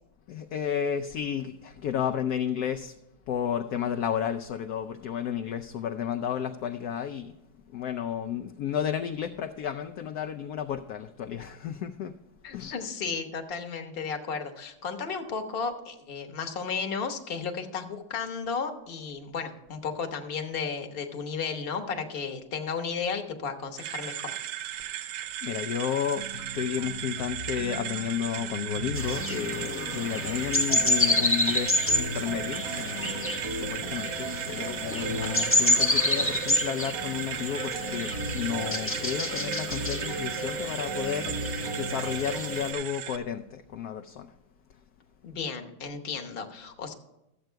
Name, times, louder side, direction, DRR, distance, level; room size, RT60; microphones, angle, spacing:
voice 1, 0.3-2.9 3.3-7.3 7.7-12.1 12.5-12.7 24.8-24.9 25.4-44.3, left 9 dB, 70° left, 1.0 m, -32 dB
voice 2, 12.4-24.3 45.2-46.9, left 5 dB, 40° left, 1.1 m, -34 dB
sound 1, 23.8-43.2, right 12 dB, 75° right, 1.2 m, -36 dB
sound 2, 26.1-42.5, right 1 dB, 30° right, 0.5 m, -39 dB
sound 3, 28.9-42.7, left 1 dB, 10° left, 0.6 m, -29 dB
13.5 x 7.8 x 4.5 m
omnidirectional pair, 2.0 m